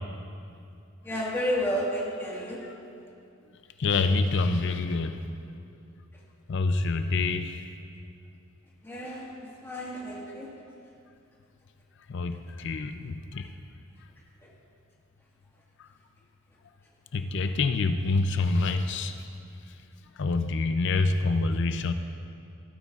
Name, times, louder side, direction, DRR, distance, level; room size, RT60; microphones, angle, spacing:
voice 1, 1.0-2.6 8.8-10.5, equal, 10° left, -5 dB, 1.6 m, -31 dB
voice 2, 3.8-5.2 6.5-7.6 12.1-13.5 15.8-15.9 17.1-19.2 20.2-21.9, left 3 dB, 55° left, 9 dB, 0.5 m, -26 dB
16.0 x 9.1 x 2.4 m, 2.5 s
head